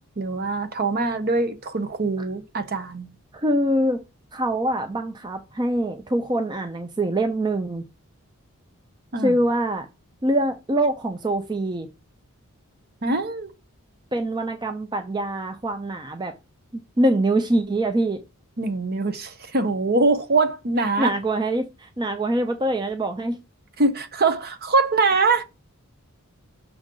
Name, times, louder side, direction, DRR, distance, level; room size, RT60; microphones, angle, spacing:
voice 1, 0.0-3.1 9.1-9.4 13.0-13.5 18.6-21.1 23.8-25.4, right 3 dB, 45° right, 0.8 m, -23 dB
voice 2, 3.3-4.0 4.3-7.8 9.2-9.9 10.2-11.9 14.1-16.3 16.7-18.2 21.0-23.4, right 1 dB, 20° right, 0.5 m, -24 dB
6.2 x 6.1 x 3.8 m
head